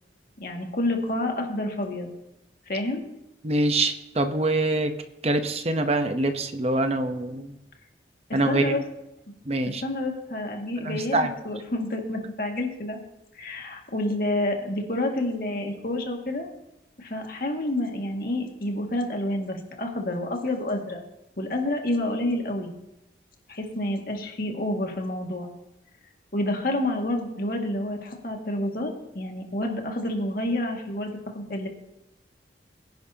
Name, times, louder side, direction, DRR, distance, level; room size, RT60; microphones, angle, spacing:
voice 1, 0.4-2.1 2.7-3.0 8.5-8.8 9.8-13.0 13.3-16.5 17.0-21.0 21.4-22.7 23.5-25.5 26.3-31.7, left 1 dB, 55° left, 2 dB, 2.0 m, -29 dB
voice 2, 3.4-4.9 5.2-7.6 8.3-8.8 9.5-9.8 10.8-11.3, right 2 dB, 35° right, 7 dB, 0.8 m, -24 dB
22.0 x 10.5 x 2.8 m, 0.89 s
head